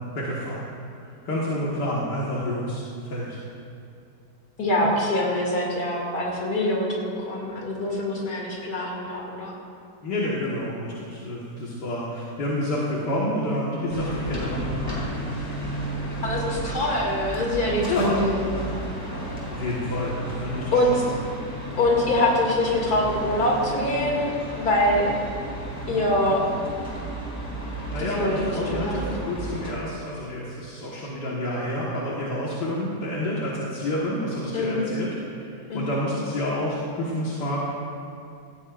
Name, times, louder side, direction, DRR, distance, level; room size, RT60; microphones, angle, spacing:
voice 1, 0.1-0.7 1.0-3.4 4.8-4.9 10.0-15.1 17.9-18.2 19.5-21.0 27.9-37.6, left 1 dB, 80° left, -6 dB, 2.3 m, -29 dB
voice 2, 4.6-9.5 16.2-18.5 20.7-21.0 21.8-25.1 25.9-26.4 28.0-28.4 28.7-29.0 34.5-34.9 35.7-36.0, left 1 dB, 65° left, -3 dB, 3.1 m, -24 dB
sound 1, 13.9-29.7, right 1 dB, 10° left, 3.2 m, -33 dB
17.5 x 15.5 x 2.5 m, 2.6 s
omnidirectional pair, 1.8 m